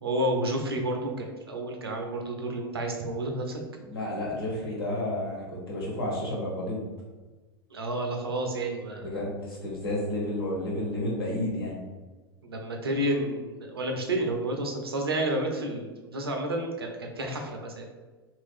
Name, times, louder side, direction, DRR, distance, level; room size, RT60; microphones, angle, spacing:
voice 1, 0.0-3.6 7.7-9.1 12.4-17.9, right 1 dB, 75° right, 2 dB, 0.7 m, -30 dB
voice 2, 3.8-6.9 9.0-11.7, left 1 dB, 70° left, -4 dB, 1.2 m, -31 dB
2.9 x 2.6 x 3.5 m, 1.3 s
figure-of-eight pair, 90°, 13 cm